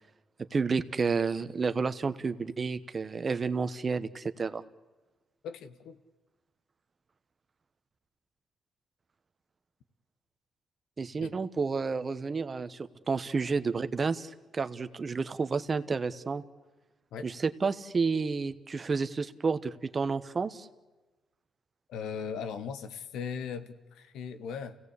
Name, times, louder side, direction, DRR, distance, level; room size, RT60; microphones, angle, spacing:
voice 1, 0.5-4.6 11.0-16.4 17.2-20.7, right 4 dB, 35° right, 12 dB, 1.1 m, -30 dB
voice 2, 5.4-6.0 11.2-11.3 17.1-17.3 21.9-24.8, left 6 dB, 80° left, 10 dB, 1.4 m, -38 dB
29.5 x 17.0 x 8.3 m, 1.2 s
cardioid pair, 90°, 0 cm